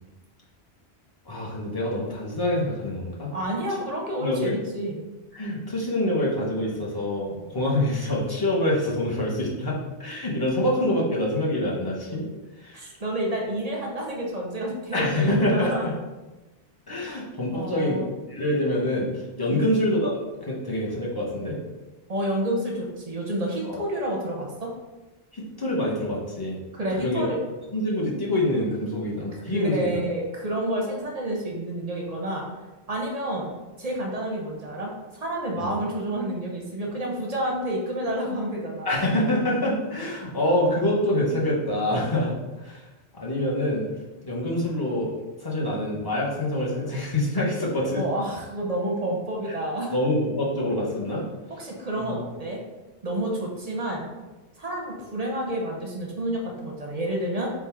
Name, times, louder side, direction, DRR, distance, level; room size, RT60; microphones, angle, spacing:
voice 1, 1.2-3.3 4.2-4.5 5.3-12.2 12.6-12.8 14.9-15.9 16.9-18.0 18.3-21.6 23.7-23.8 25.3-26.6 26.9-27.3 27.7-30.0 35.6-35.7 38.8-42.8 43.1-43.9 44.2-45.1 45.4-48.0 49.4-49.5 49.9-51.3 52.0-52.2, left 1 dB, 25° left, -5 dB, 0.8 m, -26 dB
voice 2, 3.3-5.0 12.7-15.9 17.5-18.1 19.5-19.6 22.1-24.7 26.7-27.4 29.5-32.5 32.9-33.5 33.8-39.0 48.0-49.9 51.5-52.6 53.0-54.1 54.6-57.5, right 1 dB, 45° right, -1 dB, 0.7 m, -29 dB
3.7 x 2.3 x 4.3 m, 1.1 s
omnidirectional pair, 1.1 m